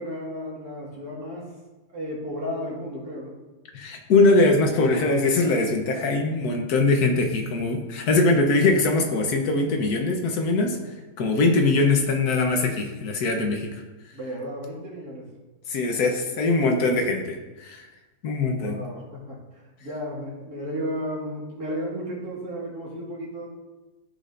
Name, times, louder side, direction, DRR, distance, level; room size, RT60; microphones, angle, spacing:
voice 1, 0.0-1.5 1.9-3.3 10.7-10.9 14.1-15.3 18.6-23.5, equal, 80° right, -4 dB, 2.5 m, -34 dB
voice 2, 3.7-10.8 11.2-13.8 15.7-17.8 18.2-18.8, left 3 dB, 80° left, 3 dB, 1.5 m, -22 dB
13.5 x 5.1 x 2.6 m, 1.1 s
omnidirectional pair, 1.6 m